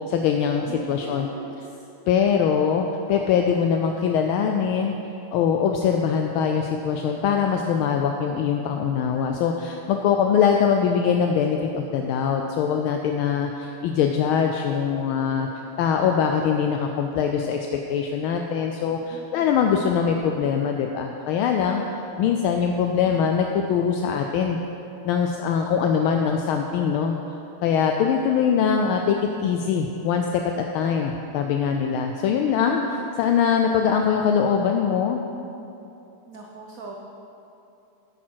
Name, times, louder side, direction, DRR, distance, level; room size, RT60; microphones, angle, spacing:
voice 1, 0.0-1.3 2.1-5.0 5.3-15.5 15.8-21.8 22.2-24.6 25.0-27.3 27.6-35.2, left 7 dB, 80° left, 3 dB, 1.4 m, -22 dB
voice 2, 0.7-1.8 18.9-19.6 22.4-23.0 32.4-32.6 36.3-36.9, right 3 dB, 60° right, -1 dB, 0.9 m, -41 dB
11.0 x 8.4 x 4.6 m, 2.8 s
omnidirectional pair, 2.4 m